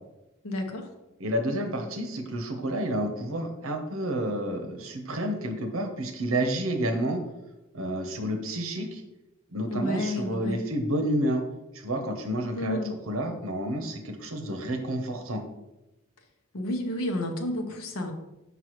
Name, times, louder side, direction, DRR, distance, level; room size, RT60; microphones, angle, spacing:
voice 1, 0.4-0.9 9.6-10.6 12.6-12.9 16.5-18.1, left 1 dB, 90° left, 3 dB, 0.9 m, -31 dB
voice 2, 1.2-7.2 7.7-9.0 9.5-11.4 11.7-12.8 13.1-15.4, right 1 dB, 75° right, 5 dB, 0.9 m, -30 dB
6.0 x 5.4 x 3.1 m, 0.96 s
head